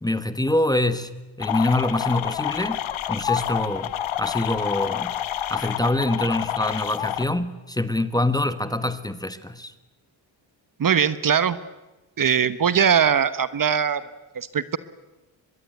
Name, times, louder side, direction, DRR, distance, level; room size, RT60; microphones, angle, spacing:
voice 1, 0.0-2.8 3.1-3.9 4.2-5.1 5.5-9.7, left 1 dB, 10° left, 12 dB, 1.2 m, -25 dB
sound 1, 1.4-7.3, left 11 dB, 75° left, 1.2 m, -28 dB
voice 2, 10.8-11.6 12.2-14.0 14.3-14.8, right 7 dB, 45° right, 14 dB, 1.1 m, -21 dB
24.0 x 21.5 x 9.2 m, 1.1 s
cardioid pair, 110°, 47 cm